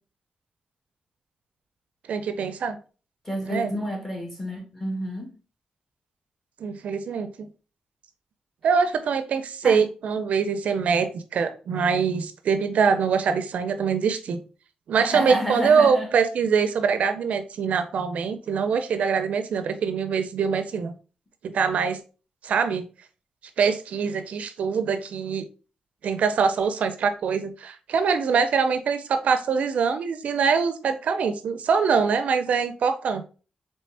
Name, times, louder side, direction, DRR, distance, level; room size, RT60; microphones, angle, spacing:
voice 1, 2.1-2.8 3.5-3.7 6.6-7.3 8.6-14.4 14.9-21.0 21.4-22.0 22.4-22.8 23.6-25.4 26.0-33.2, right 6 dB, 80° right, 0.4 m, -23 dB
voice 2, 3.2-5.3 9.6-9.8 15.0-16.1, equal, 10° left, 1.4 m, -29 dB
4.2 x 3.1 x 3.2 m
cardioid pair, 100°, 2 cm